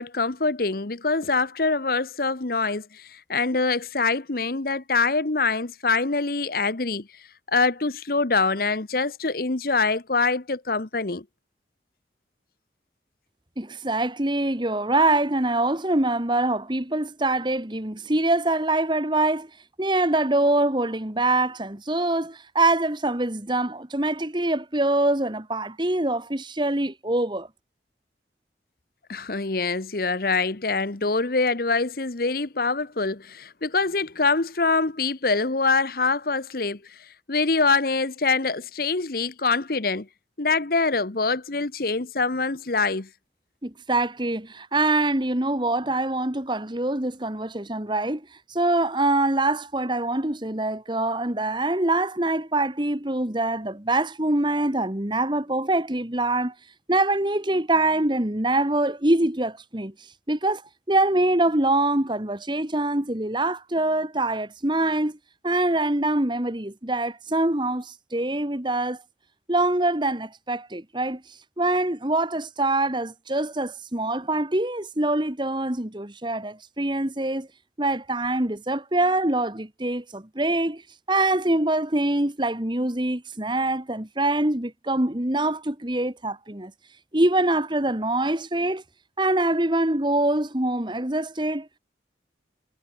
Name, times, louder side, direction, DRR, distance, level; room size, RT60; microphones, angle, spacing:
voice 1, 0.0-7.1 7.5-11.2 29.1-36.8 37.3-40.1 40.4-43.1, left 4 dB, 55° left, 1.1 m, -24 dB
voice 2, 13.6-19.5 19.8-27.5 43.6-56.5 56.9-59.9 60.3-60.6 60.9-65.2 65.4-69.0 69.5-71.2 71.6-77.5 77.8-80.8 81.1-86.7 87.1-88.8 89.2-91.7, right 2 dB, 25° right, 1.8 m, -24 dB
head